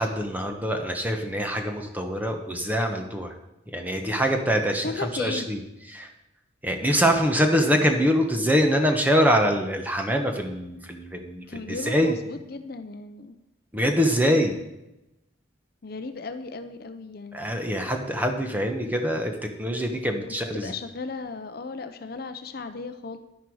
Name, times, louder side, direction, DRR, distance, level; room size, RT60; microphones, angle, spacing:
voice 1, 0.0-3.3 3.7-5.6 5.9-6.1 6.6-12.2 13.7-14.6 17.3-20.7, equal, 10° right, 4 dB, 1.1 m, -24 dB
voice 2, 4.6-5.6 11.5-13.3 15.8-17.5 20.5-23.2, left 3 dB, 50° left, 8 dB, 0.6 m, -36 dB
10.5 x 10.0 x 4.8 m, 0.93 s
head